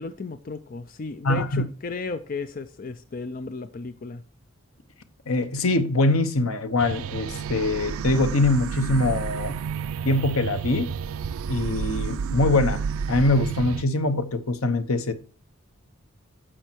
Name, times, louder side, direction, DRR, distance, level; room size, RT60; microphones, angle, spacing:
voice 1, 0.0-4.2, left 3 dB, 40° left, 0.4 m, -34 dB
voice 2, 1.2-1.6 5.3-9.6 10.0-10.9 11.5-12.8 13.1-15.1, left 2 dB, 80° left, 1.0 m, -23 dB
sound 1, 6.8-13.8, right 6 dB, 75° right, 0.4 m, -30 dB
9.9 x 6.4 x 4.5 m
head